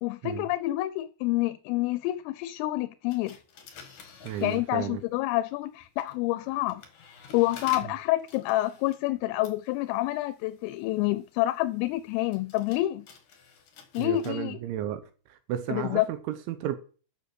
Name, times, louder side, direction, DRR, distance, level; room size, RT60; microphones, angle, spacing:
voice 1, 0.0-3.4 4.4-6.8 7.3-13.0 13.9-14.6 15.7-16.1, left 17 dB, 85° left, 3.2 m, -28 dB
sound 1, 3.1-5.2 5.8-14.3, left 5 dB, 60° left, 2.0 m, -50 dB
voice 2, 4.2-5.0 14.0-15.0 15.3-16.8, right 11 dB, 80° right, 3.0 m, -33 dB
10.0 x 6.8 x 6.4 m
omnidirectional pair, 5.9 m